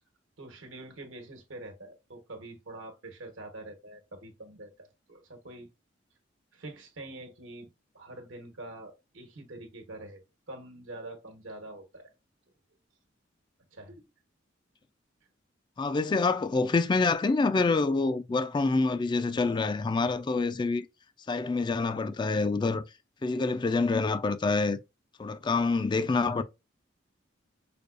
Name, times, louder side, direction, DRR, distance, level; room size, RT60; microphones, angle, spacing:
voice 1, 0.4-5.7 6.5-10.2 10.5-12.1 13.7-14.1 23.3-23.4, right 2 dB, 90° right, 1.2 m, -45 dB
voice 2, 15.8-20.9 21.3-22.8 23.2-24.8 25.2-26.4, left 3 dB, 25° left, 0.3 m, -26 dB
5.1 x 2.3 x 2.4 m
head